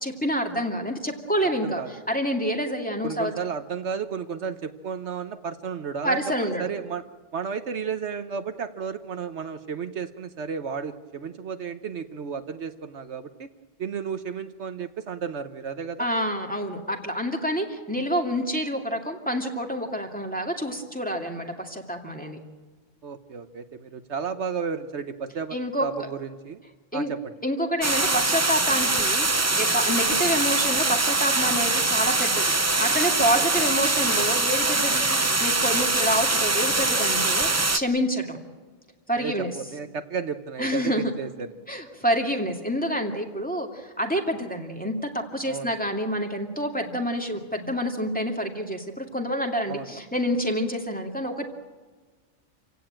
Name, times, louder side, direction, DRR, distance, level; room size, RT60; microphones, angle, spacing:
voice 1, 0.0-3.3 6.0-6.7 16.0-22.4 25.5-26.1 26.9-27.1 27.4-29.3 29.5-38.4 39.1-39.5 40.6-41.1 41.7-51.5, equal, 5° left, 1 dB, 2.5 m, -28 dB
voice 2, 3.0-7.0 7.3-13.5 13.8-16.1 23.0-25.6 25.8-26.6 26.9-27.3 33.6-33.7 39.2-41.5 45.5-45.7 49.7-49.9, right 6 dB, 70° right, 9 dB, 1.3 m, -33 dB
sound 1, 27.8-37.8, right 3 dB, 20° right, 0.5 m, -23 dB
27.5 x 16.5 x 8.9 m, 1.4 s
omnidirectional pair, 1.2 m